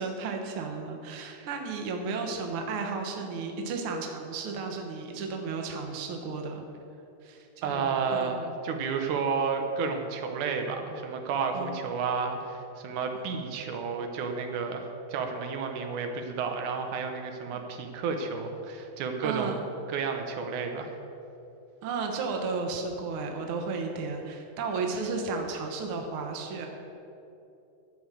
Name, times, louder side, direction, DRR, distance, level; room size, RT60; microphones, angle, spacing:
voice 1, 0.0-6.7 7.2-8.4 11.5-11.8 17.4-17.6 19.2-19.6 21.8-26.7, right 4 dB, 55° right, 2 dB, 1.8 m, -33 dB
voice 2, 7.6-19.6 19.9-21.0, right 5 dB, 90° right, 4 dB, 2.4 m, -31 dB
13.5 x 5.2 x 7.6 m, 2.8 s
omnidirectional pair, 3.4 m